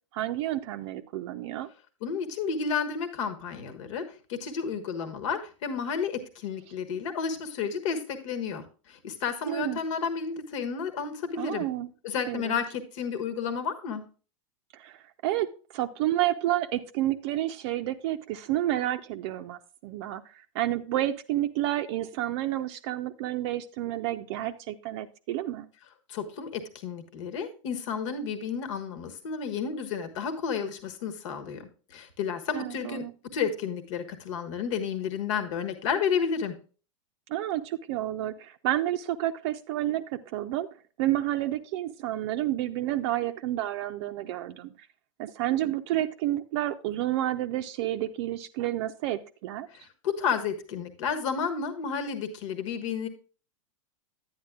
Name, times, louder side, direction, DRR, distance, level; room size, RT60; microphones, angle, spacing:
voice 1, 0.1-1.7 9.5-9.8 11.4-11.9 12.3-12.6 14.7-15.5 15.7-25.7 32.5-33.1 37.3-40.7 41.0-44.9 45.2-49.7, right 14 dB, 55° right, 7 dB, 0.5 m, -30 dB
voice 2, 2.0-4.0 4.3-11.6 12.0-14.0 26.1-33.0 33.3-36.5 49.7-53.1, left 6 dB, 65° left, 9 dB, 1.3 m, -31 dB
10.5 x 9.4 x 2.3 m, 0.37 s
hypercardioid pair, 110°, 17 cm